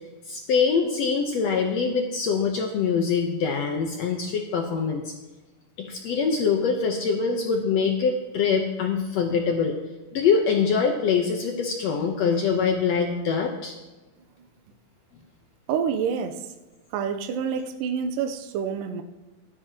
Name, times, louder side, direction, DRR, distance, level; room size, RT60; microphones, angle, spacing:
voice 1, 0.3-5.1 5.8-9.8 10.1-13.7, left 5 dB, 90° left, 3 dB, 1.4 m, -24 dB
voice 2, 15.7-16.5 16.9-19.0, right 7 dB, 75° right, 6 dB, 2.2 m, -27 dB
17.0 x 12.5 x 2.9 m, 1.1 s
omnidirectional pair, 4.2 m